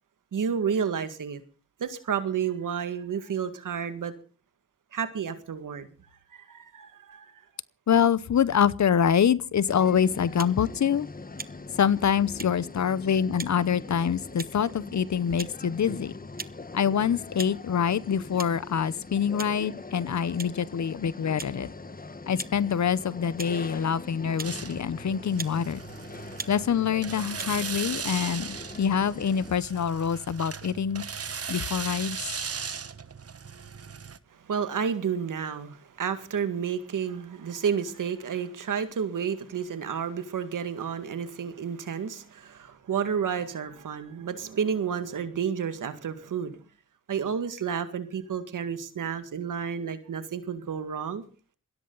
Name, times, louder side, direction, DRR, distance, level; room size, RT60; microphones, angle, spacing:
voice 1, 0.3-1.4 1.8-4.1 4.9-5.9 6.3-7.3 34.3-46.6 47.1-51.2, right 7 dB, 85° right, 2.0 m, -31 dB
voice 2, 7.9-11.1 11.8-16.1 16.7-21.7 22.3-25.8 26.5-31.0 31.5-32.3, left 8 dB, 65° left, 0.9 m, -25 dB
sound 1, 9.7-29.5, left 3 dB, 30° left, 1.2 m, -42 dB
sound 2, 10.4-10.6 11.4-11.5 12.4-12.5 13.4-13.5 14.4-14.6 15.4-15.5 16.4-16.5 17.4-17.6 18.4-18.5 19.4-19.6 20.4-20.5 21.4-21.5 22.4-22.5 23.4-23.5 24.4-24.5 25.4-25.6 26.4-26.5 27.4-27.5, right 4 dB, 30° right, 1.0 m, -38 dB
sound 3, 24.4-34.2, right 6 dB, 50° right, 1.2 m, -38 dB
21.0 x 16.0 x 4.0 m
cardioid pair, 60°, 31 cm